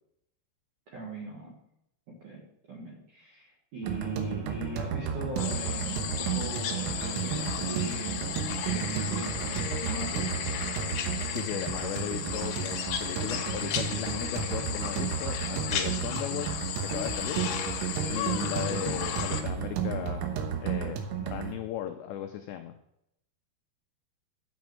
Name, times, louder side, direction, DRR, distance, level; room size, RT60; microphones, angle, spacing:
voice 1, 0.9-1.5 2.2-2.4 2.7-8.2 8.7-10.3 18.8-18.9, right 2 dB, 60° right, -2 dB, 2.0 m, -39 dB
sound 1, 3.8-21.5, right 7 dB, 80° right, 3.5 m, -33 dB
sound 2, 5.4-19.4, left 9 dB, 70° left, 2.5 m, -34 dB
voice 2, 11.3-17.4 18.1-20.3 20.6-22.7, left 11 dB, 90° left, 6 dB, 2.4 m, -37 dB
8.1 x 6.2 x 7.7 m, 0.80 s
omnidirectional pair, 5.8 m